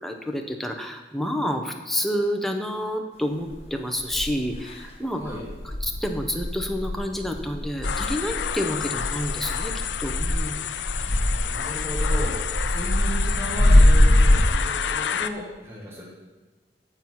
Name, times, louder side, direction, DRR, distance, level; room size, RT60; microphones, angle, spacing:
voice 1, 0.0-5.4 5.6-9.7 10.0-10.7, equal, ahead, 3 dB, 0.7 m, -29 dB
sound 1, 3.5-3.6 4.1-4.8 5.2-14.5, left 1 dB, 35° left, 1.1 m, -22 dB
sound 2, 7.8-15.3, left 9 dB, 80° left, 0.4 m, -30 dB
voice 2, 11.4-12.3 12.7-16.0, equal, 15° right, -4 dB, 1.8 m, -35 dB
9.3 x 4.5 x 5.5 m, 1.3 s
head